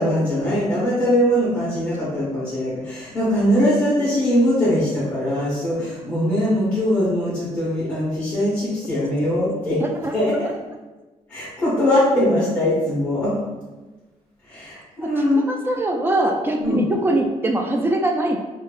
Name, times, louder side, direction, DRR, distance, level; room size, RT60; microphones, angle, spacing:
voice 1, 0.0-9.8 10.1-10.5 11.3-13.4 14.5-15.5 16.5-16.8, left 1 dB, 10° left, -12 dB, 1.5 m, -21 dB
voice 2, 15.5-18.4, right 1 dB, 20° right, 2 dB, 0.4 m, -22 dB
4.4 x 2.9 x 2.4 m, 1.2 s
cardioid pair, 140°, 12 cm